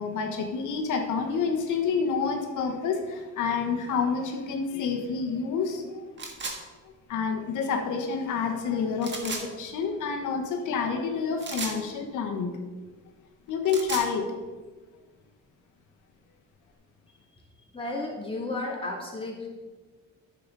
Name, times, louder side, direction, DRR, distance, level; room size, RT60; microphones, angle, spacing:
voice 1, 0.0-6.0 7.1-12.5 13.5-14.5, left 5 dB, 80° left, 4 dB, 1.3 m, -28 dB
sound 1, 6.2-6.6 9.0-9.4 11.4-11.8 13.5-14.1, right 3 dB, 40° right, 1.7 m, -34 dB
voice 2, 17.7-19.5, left 2 dB, 15° left, -3 dB, 2.7 m, -33 dB
10.0 x 6.8 x 4.0 m, 1.3 s
cardioid pair, 90°, 30 cm